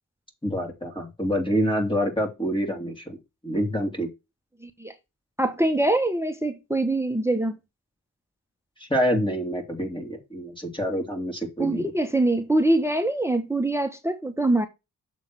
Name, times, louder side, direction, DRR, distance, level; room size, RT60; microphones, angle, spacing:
voice 1, 0.4-3.2 3.4-4.1 8.8-11.9, equal, 10° left, 2.8 m, -27 dB
voice 2, 4.6-4.9 5.4-7.5 11.6-14.7, right 2 dB, 5° right, 1.2 m, -24 dB
7.3 x 3.7 x 6.3 m
cardioid pair, 55°, 39 cm